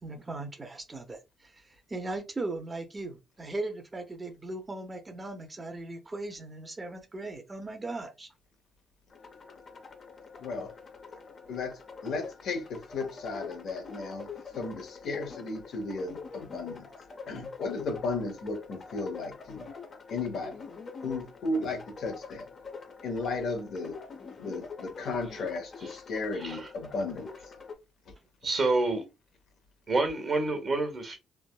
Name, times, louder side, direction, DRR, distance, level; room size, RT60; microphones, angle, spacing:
voice 1, 0.0-1.5 1.9-8.3, right 2 dB, 25° right, 0.7 m, -38 dB
sound 1, 9.1-27.7, left 4 dB, 45° left, 0.7 m, -45 dB
voice 2, 10.4-10.7 11.5-16.9 17.3-19.7 20.1-20.5 21.0-22.5 23.0-24.0 24.4-27.3, left 3 dB, 70° left, 0.9 m, -35 dB
voice 3, 26.3-26.7 28.4-29.0 29.9-31.2, right 2 dB, 40° right, 1.0 m, -28 dB
3.3 x 2.1 x 2.2 m
cardioid pair, 90°, 0 cm